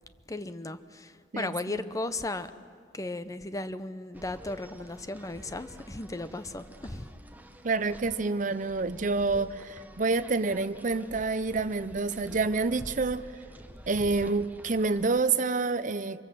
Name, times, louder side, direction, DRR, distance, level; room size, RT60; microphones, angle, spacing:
voice 1, 0.3-2.5 2.9-7.1, left 2 dB, 20° left, 12 dB, 0.8 m, -36 dB
voice 2, 1.3-1.8 7.6-13.2 13.9-16.2, right 3 dB, 45° right, 13 dB, 0.7 m, -28 dB
sound 1, 4.1-15.3, equal, 10° right, 1.1 m, -48 dB
25.0 x 23.5 x 7.6 m, 2.2 s
head